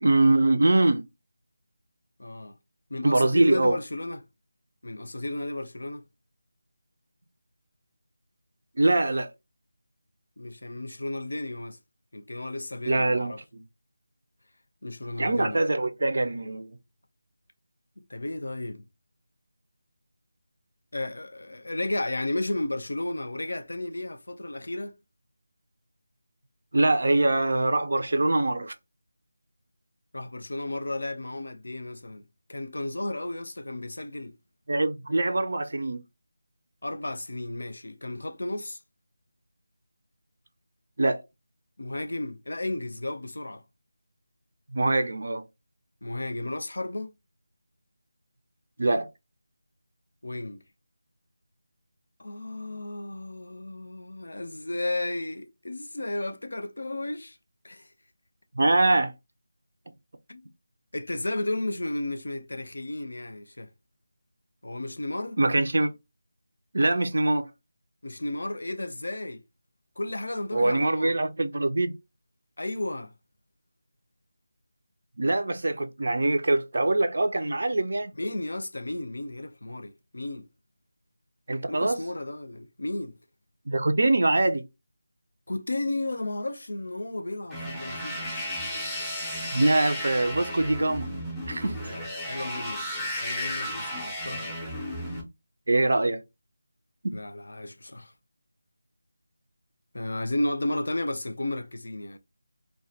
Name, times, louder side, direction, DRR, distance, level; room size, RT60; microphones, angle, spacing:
voice 1, 0.0-1.1 3.0-3.8 8.8-9.3 12.9-13.6 15.2-16.8 26.7-28.7 34.7-36.0 41.0-41.2 44.7-45.4 48.8-49.1 58.6-59.1 65.4-65.9 66.7-67.5 70.5-71.9 75.2-78.1 81.5-82.0 83.7-84.6 89.5-91.1 91.5-91.8 95.7-96.2 97.0-97.1, right 2 dB, 65° right, 0.4 m, -23 dB
voice 2, 2.2-2.6 2.9-4.2 4.8-6.1 10.4-11.8 12.1-13.4 14.8-15.6 18.0-18.8 20.9-24.9 30.1-34.4 36.8-38.8 41.8-43.6 46.0-47.1 50.2-50.6 52.2-57.4 57.6-57.9 60.3-60.4 60.9-63.7 64.6-65.4 68.0-69.4 70.0-71.2 72.6-73.1 78.2-80.5 81.7-83.2 85.5-88.4 91.8-94.6 97.1-98.1 99.9-102.2, left 1 dB, 75° left, 0.4 m, -33 dB
sound 1, 87.5-95.2, left 1 dB, ahead, 0.5 m, -34 dB
2.2 x 2.1 x 2.7 m
figure-of-eight pair, 170°, 0 cm